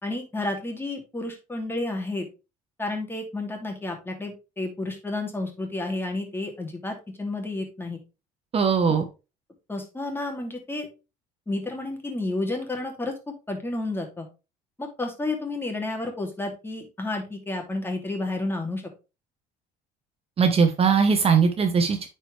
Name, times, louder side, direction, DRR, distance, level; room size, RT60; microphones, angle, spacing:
voice 1, 0.0-2.3 2.8-8.0 8.9-9.0 9.7-10.9 11.5-13.1 13.5-14.3 14.8-18.8, left 2 dB, 15° left, 2 dB, 2.6 m, -31 dB
voice 2, 8.5-9.0 20.4-22.1, right 5 dB, 40° right, 7 dB, 1.1 m, -20 dB
8.9 x 4.7 x 3.3 m, 0.29 s
supercardioid pair, 90°, 16 cm